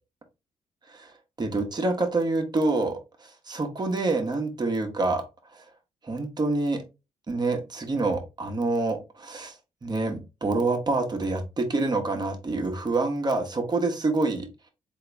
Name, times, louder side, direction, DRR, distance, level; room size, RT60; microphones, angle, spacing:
voice 1, 0.9-5.2 5.5-5.6 6.0-6.8 7.3-14.5, right 3 dB, 35° right, 4 dB, 1.2 m, -27 dB
3.8 x 2.9 x 3.4 m, 0.27 s
cardioid pair, 70°, 13 cm